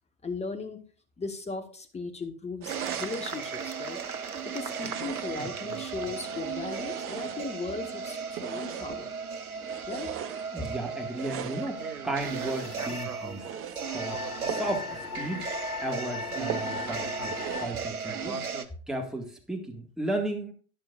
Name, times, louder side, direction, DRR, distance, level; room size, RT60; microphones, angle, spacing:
voice 1, 0.2-0.8 1.2-4.0 4.4-9.1 9.9-10.1, left 4 dB, 15° left, 6 dB, 1.4 m, -37 dB
sound 1, 2.6-3.4 4.6-5.5 6.1-7.7 8.3-9.0 9.6-10.5 11.1-11.7 12.3-12.8 13.3-13.8 14.5-14.8 15.2-15.3 15.7-15.8 16.5-17.0 17.3-17.8, right 10 dB, 30° right, 0.8 m, -39 dB
sound 2, 2.7-18.6, right 5 dB, 80° right, 0.9 m, -36 dB
voice 2, 5.4-5.8 10.5-13.4 13.7-15.5 15.8-18.5 18.9-20.5, right 1 dB, ahead, 1 dB, 1.9 m, -35 dB
sound 3, 12.2-17.7, left 6 dB, 90° left, 0.7 m, -39 dB
12.0 x 10.5 x 2.5 m, 0.39 s
figure-of-eight pair, 80°, 43 cm